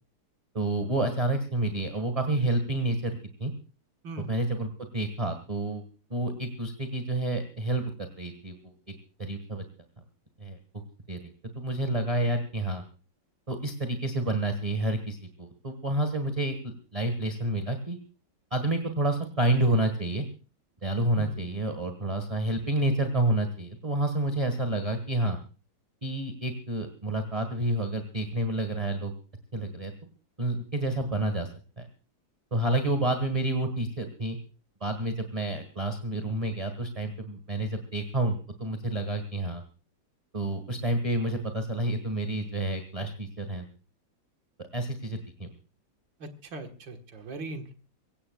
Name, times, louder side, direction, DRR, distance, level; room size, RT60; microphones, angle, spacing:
voice 1, 0.5-3.5 4.3-5.8 6.1-7.9 8.2-8.7 9.2-9.6 10.4-10.6 11.1-11.3 11.5-12.8 13.5-18.0 18.5-20.2 20.8-25.4 26.0-29.1 29.5-29.9 30.4-31.5 31.8-31.9 32.5-34.4 34.8-39.6 40.3-43.6 44.7-45.5, right 1 dB, 20° right, 6 dB, 1.5 m, -29 dB
voice 2, 4.0-4.4 21.2-21.4 46.2-47.7, right 1 dB, 70° right, 5 dB, 2.4 m, -39 dB
24.0 x 17.0 x 2.3 m, 0.36 s
omnidirectional pair, 2.1 m